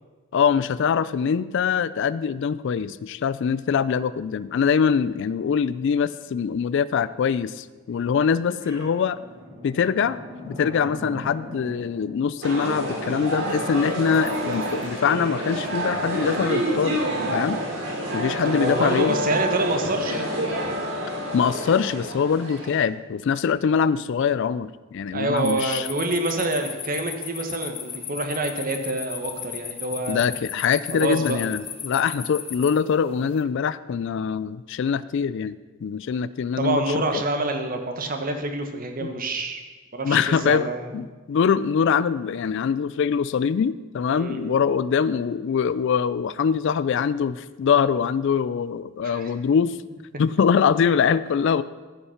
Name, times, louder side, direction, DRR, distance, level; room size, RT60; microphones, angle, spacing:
voice 1, 0.3-9.2 9.6-10.2 10.4-17.0 17.3-17.6 18.1-19.2 21.3-25.9 30.1-37.2 39.0-39.1 40.0-40.7 40.9-49.8 50.2-51.6, left 6 dB, 60° left, 17 dB, 0.3 m, -23 dB
sound 1, 7.8-14.8, equal, 15° right, 1.6 m, -42 dB
sound 2, 12.4-22.8, equal, 60° right, 3.1 m, -28 dB
voice 2, 18.4-20.3 25.1-30.2 30.9-31.4 36.6-39.6 39.9-40.9 44.1-44.4 49.0-49.3, right 2 dB, 40° right, 6 dB, 1.1 m, -27 dB
sound 3, 25.4-33.4, left 8 dB, 25° left, 0.7 m, -36 dB
14.0 x 5.6 x 5.7 m, 1.3 s
head